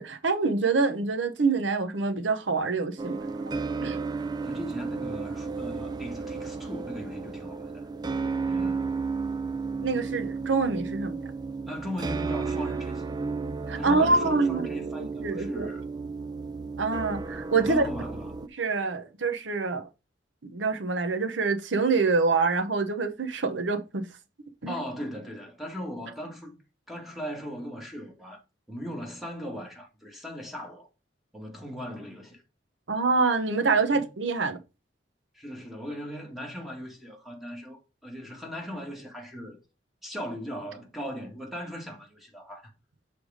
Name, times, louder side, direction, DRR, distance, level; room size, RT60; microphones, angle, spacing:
voice 1, 0.0-3.5 3.8-4.0 9.8-11.2 13.7-14.7 15.0-15.7 16.8-17.9 18.6-19.9 20.4-24.0 24.6-24.8 32.9-34.6, right 4 dB, 90° right, 0.9 m, -26 dB
sound 1, 3.0-18.5, right 4 dB, 25° right, 0.3 m, -33 dB
voice 2, 4.4-7.7 8.4-9.0 11.7-13.0 13.7-15.8 17.4-18.4 24.7-26.6 26.9-28.4 28.7-30.9 31.3-32.4 33.9-34.1 35.3-39.6 40.0-42.7, equal, ahead, 1.7 m, -38 dB
6.4 x 3.5 x 4.9 m
head